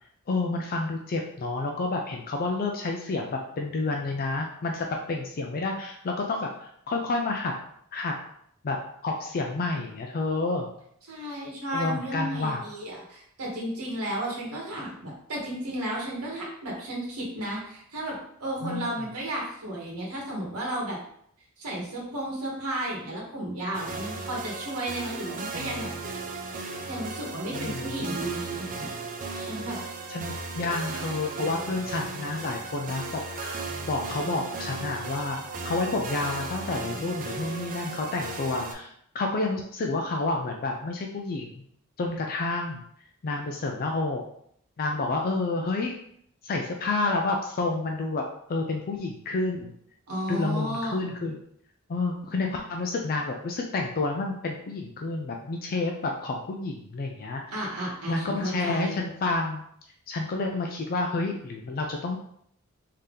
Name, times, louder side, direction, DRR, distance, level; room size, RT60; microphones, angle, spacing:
voice 1, 0.3-7.5 7.9-8.1 8.6-8.8 9.0-10.7 11.7-12.6 18.6-18.9 27.5-28.2 30.1-30.3 30.6-41.6 42.0-42.8 43.2-44.2 44.8-46.0 46.4-48.2 48.5-49.7 50.3-51.4 51.9-57.4 58.1-59.6 60.1-62.2, left 3 dB, 40° left, 1 dB, 0.4 m, -29 dB
voice 2, 11.1-21.0 21.6-25.9 26.9-28.9 29.3-29.8 50.1-51.0 57.5-59.0, right 1 dB, 80° right, -3 dB, 1.1 m, -33 dB
sound 1, 23.7-38.7, right 3 dB, 40° right, 0.5 m, -36 dB
3.7 x 2.8 x 3.4 m, 0.68 s
head